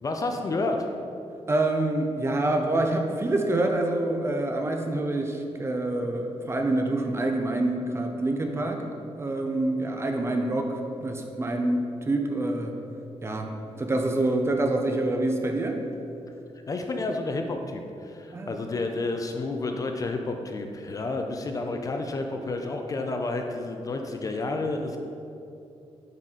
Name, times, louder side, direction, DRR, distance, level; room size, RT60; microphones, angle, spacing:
voice 1, 0.0-0.9 16.7-25.0, left 2 dB, 30° left, 4 dB, 0.4 m, -30 dB
voice 2, 1.5-8.8 9.2-12.8 13.2-15.8 18.3-18.6, right 2 dB, 20° right, 3 dB, 0.5 m, -26 dB
9.0 x 4.1 x 3.7 m, 2.6 s
wide cardioid pair, 175°, 12 cm